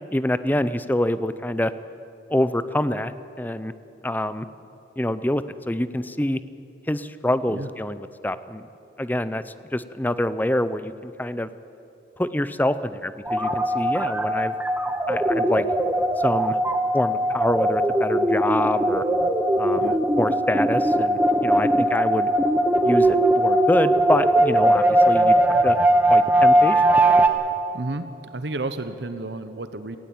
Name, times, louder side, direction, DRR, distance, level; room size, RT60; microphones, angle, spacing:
voice 1, 0.1-1.7 2.3-3.7 4.0-4.5 5.0-6.4 6.9-8.7 9.0-11.5 12.2-14.5 15.1-15.6 16.2-16.6 16.9-19.0 19.6-22.3 22.8-25.4 25.6-25.8 26.1-26.8, left 1 dB, 10° left, 14 dB, 0.5 m, -26 dB
sound 1, 13.3-27.3, right 1 dB, 10° right, 1.0 m, -20 dB
voice 2, 27.7-28.1 28.3-30.0, right 2 dB, 65° right, 11 dB, 0.9 m, -31 dB
18.5 x 16.5 x 8.8 m, 2.9 s
head